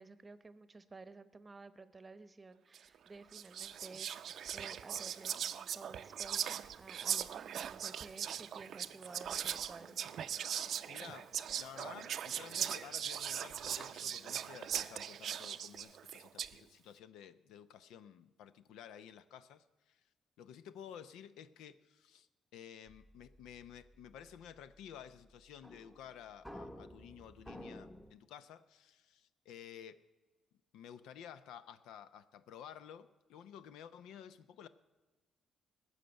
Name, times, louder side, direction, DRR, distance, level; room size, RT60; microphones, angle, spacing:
voice 1, 0.0-10.0, right 3 dB, 25° right, 13 dB, 0.8 m, -54 dB
Whispering, 2.7-3.0 3.3-16.6, right 9 dB, 65° right, 0.5 m, -40 dB
Acoustic guitar, 7.8-15.8, left 1 dB, 70° left, 4.2 m, -65 dB
voice 2, 10.9-20.0 20.4-30.0 30.7-34.7, left 9 dB, 90° left, 13 dB, 0.6 m, -53 dB
sound 1, 22.9-28.1, equal, 5° left, 0.9 m, -53 dB
19.5 x 6.6 x 8.8 m, 1.3 s
cardioid pair, 90°, 0 cm